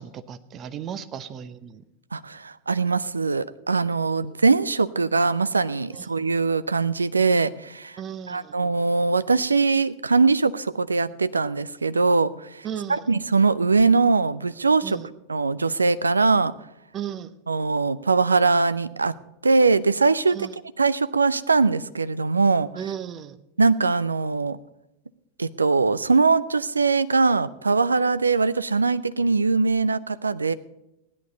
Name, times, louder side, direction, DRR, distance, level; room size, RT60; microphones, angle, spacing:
voice 1, 0.0-1.8 4.2-4.4 5.9-6.1 8.0-8.5 12.6-13.1 14.8-15.1 16.9-17.3 20.3-20.5 22.7-23.4, right 9 dB, 30° right, 12 dB, 0.8 m, -35 dB
voice 2, 2.1-8.0 8.3-15.0 15.3-16.5 17.5-19.2 19.4-20.4 20.8-22.7 23.6-24.6 25.4-30.5, right 4 dB, 75° right, 14 dB, 0.5 m, -21 dB
16.0 x 11.0 x 4.0 m, 0.89 s
figure-of-eight pair, 90°, 0 cm